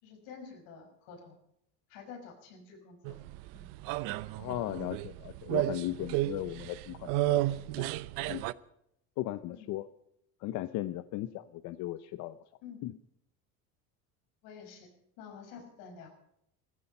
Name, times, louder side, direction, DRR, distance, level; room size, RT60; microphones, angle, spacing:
voice 1, 0.0-1.4 1.9-3.2 3.5-3.7 9.5-9.7 12.6-12.8 14.4-14.9 15.2-16.1, left 6 dB, 75° left, 3 dB, 5.9 m, -49 dB
sound 1, 3.0-8.5, right 17 dB, 70° right, 0.8 m, -33 dB
voice 2, 4.4-7.9 8.3-8.4 9.2-9.9 10.4-12.4 12.8-12.9, left 15 dB, 55° left, 12 dB, 0.8 m, -37 dB
18.0 x 15.0 x 5.5 m, 0.76 s
cardioid pair, 140°, 34 cm